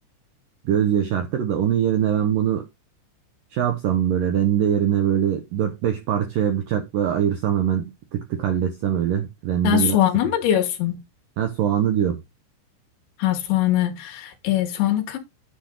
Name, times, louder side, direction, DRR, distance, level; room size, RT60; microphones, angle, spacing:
voice 1, 0.7-2.7 3.5-10.0 11.4-12.2, right 9 dB, 75° right, 2.0 m, -22 dB
voice 2, 9.6-11.0 13.2-15.2, left 12 dB, 75° left, 3.7 m, -22 dB
9.9 x 6.2 x 3.9 m
omnidirectional pair, 5.4 m